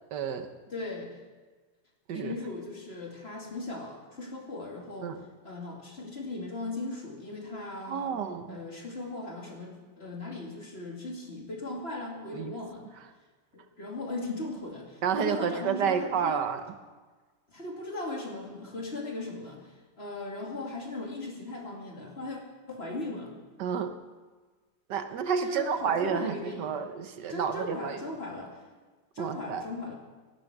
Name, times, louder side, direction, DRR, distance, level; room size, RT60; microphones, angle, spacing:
voice 1, 0.1-0.5 2.1-2.3 5.0-5.2 7.8-8.6 12.3-12.5 15.0-16.6 23.6-23.9 24.9-28.0 29.2-29.6, right 7 dB, 80° right, 8 dB, 1.6 m, -30 dB
voice 2, 0.7-1.2 2.1-5.1 5.4-8.2 8.5-12.9 13.5-16.4 17.5-22.4 22.7-23.3 25.4-26.8 27.3-28.6 29.1-29.9, left 2 dB, 35° left, -1 dB, 2.7 m, -38 dB
17.5 x 11.5 x 5.9 m, 1.4 s
omnidirectional pair, 1.8 m